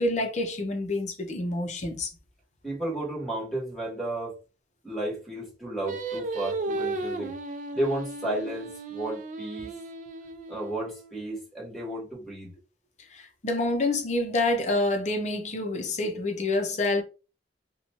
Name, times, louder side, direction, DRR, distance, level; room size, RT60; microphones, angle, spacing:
voice 1, 0.0-2.1 13.1-17.0, left 2 dB, 40° left, 0.7 m, -27 dB
voice 2, 2.6-4.4 4.8-7.4 7.7-9.8 10.5-12.5, right 1 dB, ahead, 1.4 m, -33 dB
Singing, 5.8-11.1, right 3 dB, 45° right, 0.4 m, -35 dB
2.8 x 2.2 x 2.9 m
head